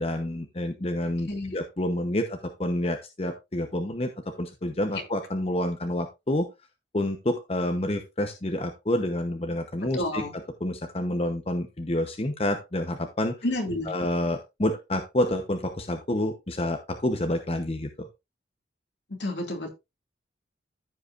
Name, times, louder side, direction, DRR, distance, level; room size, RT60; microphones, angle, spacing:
voice 1, 0.0-4.1 4.4-6.5 6.9-13.4 13.9-18.1, left 1 dB, 35° left, 0.9 m, -28 dB
voice 2, 1.2-1.5 9.9-10.3 13.4-13.9 19.1-19.7, left 1 dB, 70° left, 2.4 m, -30 dB
14.5 x 5.5 x 2.5 m
head